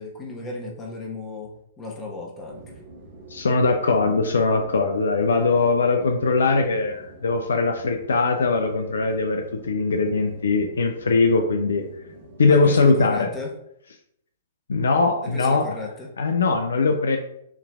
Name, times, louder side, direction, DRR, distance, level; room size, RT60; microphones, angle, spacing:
voice 1, 0.0-1.5 1.8-2.8 12.5-13.5 15.2-16.1, left 2 dB, 20° left, -1 dB, 1.2 m, -35 dB
sound 1, 2.5-13.4, right 2 dB, 45° right, 1.0 m, -45 dB
voice 2, 3.3-11.8 12.4-13.3 14.7-15.8 16.2-17.2, left 3 dB, 70° left, 5 dB, 0.5 m, -21 dB
5.6 x 3.1 x 2.4 m, 0.75 s
figure-of-eight pair, 110°, 0 cm